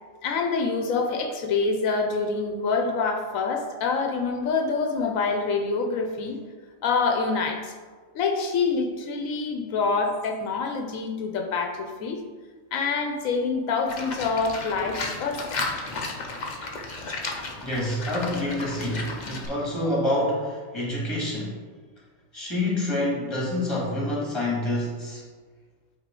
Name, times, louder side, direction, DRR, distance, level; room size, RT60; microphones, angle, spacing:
voice 1, 0.2-6.4 6.8-7.7 8.1-12.2 12.7-15.6, left 4 dB, 85° left, 3 dB, 1.1 m, -26 dB
Livestock farm animals working animals, 13.9-19.5, left 3 dB, 40° left, 0.8 m, -33 dB
voice 2, 17.6-21.6 22.3-25.2, left 1 dB, 20° left, -4 dB, 2.0 m, -27 dB
8.0 x 4.0 x 3.7 m, 1.4 s
omnidirectional pair, 1.4 m